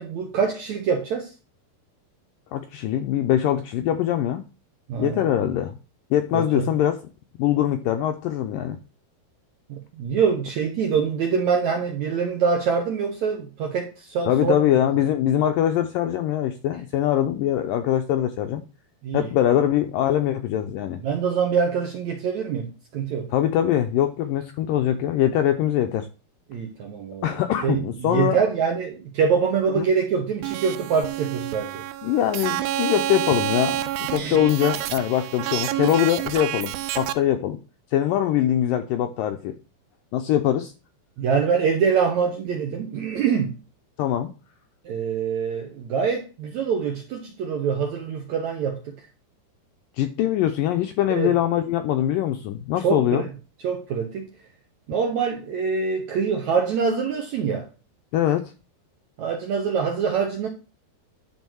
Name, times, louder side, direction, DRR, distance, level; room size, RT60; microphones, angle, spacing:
voice 1, 0.0-1.3 4.9-5.2 6.3-6.7 9.7-14.5 19.0-19.3 21.0-23.3 26.5-27.3 27.6-31.8 34.1-34.4 41.2-43.6 44.9-48.9 51.1-51.3 52.8-53.3 53.6-54.3 54.9-57.7 59.2-60.5, right 6 dB, 70° right, 1.8 m, -24 dB
voice 2, 2.5-4.4 5.0-5.7 6.1-7.0 7.4-8.8 14.3-18.6 19.1-21.0 23.3-26.1 27.2-28.4 29.8-29.9 32.0-37.6 37.9-39.6 40.1-40.7 44.0-44.3 50.0-53.3 58.1-58.4, left 11 dB, 80° left, 2.0 m, -22 dB
sound 1, 30.4-37.1, right 13 dB, 85° right, 2.7 m, -28 dB
11.0 x 4.4 x 6.2 m
omnidirectional pair, 4.7 m